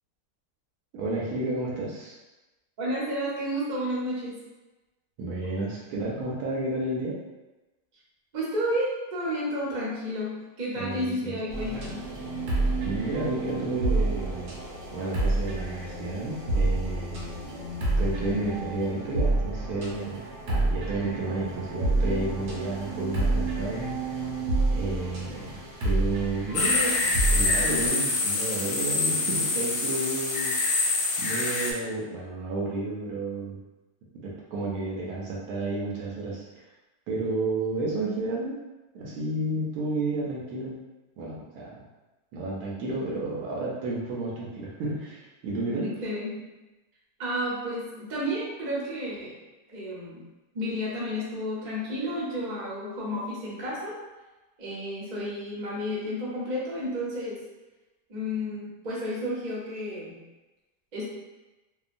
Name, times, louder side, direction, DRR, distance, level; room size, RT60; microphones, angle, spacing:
voice 1, 0.9-2.1 5.2-7.2 10.7-11.4 12.8-14.6 14.9-17.2 18.0-20.2 20.5-23.9 24.7-27.0 27.3-30.5 31.2-33.6 34.1-36.4 37.1-38.6 38.9-40.8 41.2-41.8 42.3-45.9, right 2 dB, 75° right, -4 dB, 1.1 m, -31 dB
voice 2, 2.8-4.4 8.3-12.0 45.7-46.4 47.2-49.4 49.7-50.2 50.5-54.0 54.6-57.3 58.1-60.2 60.9-61.1, equal, 40° right, -6 dB, 0.7 m, -31 dB
sound 1, 11.5-27.9, right 2 dB, 90° right, 1.3 m, -29 dB
Morning at Kosciuszko National Park, 26.5-31.7, left 3 dB, 70° left, 0.9 m, -26 dB
2.8 x 2.2 x 2.5 m, 1.1 s
omnidirectional pair, 1.7 m